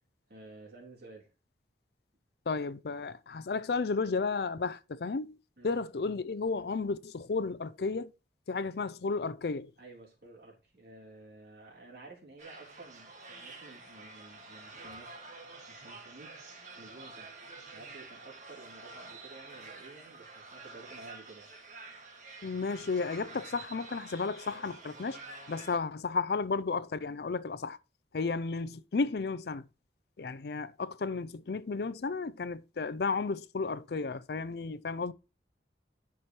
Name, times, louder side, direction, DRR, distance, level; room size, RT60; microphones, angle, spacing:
voice 1, 0.3-1.3 5.6-5.8 9.8-15.4 15.7-16.3 16.8-17.3 17.7-21.5, right 2 dB, 60° right, 3.7 m, -52 dB
voice 2, 2.5-5.4 5.6-8.1 8.5-9.7 22.4-25.2 25.5-27.8 28.1-29.6 30.2-35.1, left 4 dB, 65° left, 0.5 m, -33 dB
sound 1, 12.4-25.8, right 3 dB, 40° right, 1.9 m, -49 dB
10.5 x 6.0 x 3.1 m
head